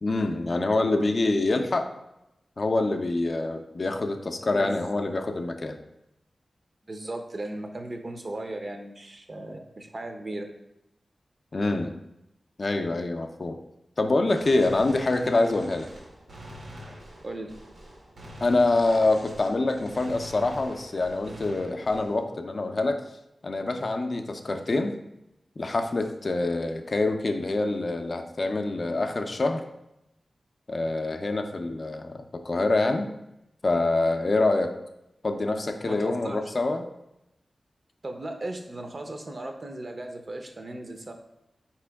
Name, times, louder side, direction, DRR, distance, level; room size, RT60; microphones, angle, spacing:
voice 1, 0.0-1.9 2.6-5.8 11.5-11.9 12.6-13.6 14.0-15.9 18.4-23.0 23.4-25.0 25.6-29.6 30.7-33.1 33.6-34.7 35.2-36.9, left 2 dB, 55° left, 5 dB, 0.4 m, -25 dB
voice 2, 4.5-4.9 6.9-10.5 17.2-17.5 35.9-36.4 38.0-41.1, right 1 dB, 45° right, 4 dB, 0.6 m, -36 dB
Gunshot gunfire, 14.3-22.3, equal, 75° right, 1.0 m, -45 dB
4.3 x 3.0 x 3.4 m, 0.86 s
cardioid pair, 60°, 0 cm